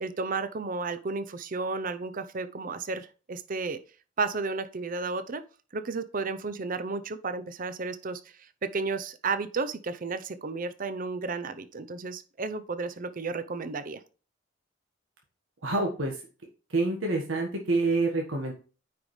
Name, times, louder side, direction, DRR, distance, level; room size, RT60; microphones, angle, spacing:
voice 1, 0.0-3.8 4.2-5.4 5.7-8.2 8.6-14.0, right 4 dB, 45° right, 11 dB, 0.6 m, -32 dB
voice 2, 15.6-16.2 16.7-18.5, right 3 dB, 90° right, 0 dB, 1.5 m, -27 dB
9.3 x 4.9 x 3.2 m, 0.36 s
head